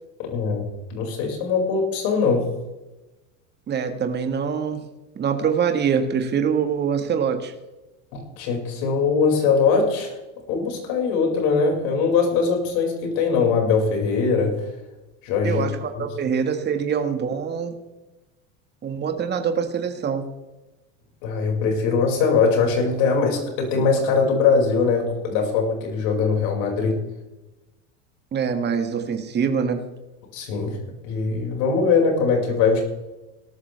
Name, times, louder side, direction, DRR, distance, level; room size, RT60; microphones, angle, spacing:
voice 1, 0.2-0.7 0.9-2.5 8.1-10.1 10.5-14.5 15.2-15.6 16.0-16.1 21.2-26.9 30.3-30.7 31.0-32.8, left 5 dB, 70° left, 1 dB, 5.5 m, -21 dB
voice 2, 3.7-4.8 5.2-7.5 15.4-17.7 18.8-20.3 28.3-29.8, right 6 dB, 30° right, 6 dB, 1.6 m, -24 dB
18.0 x 13.0 x 3.4 m, 1.0 s
supercardioid pair, 125°, 37 cm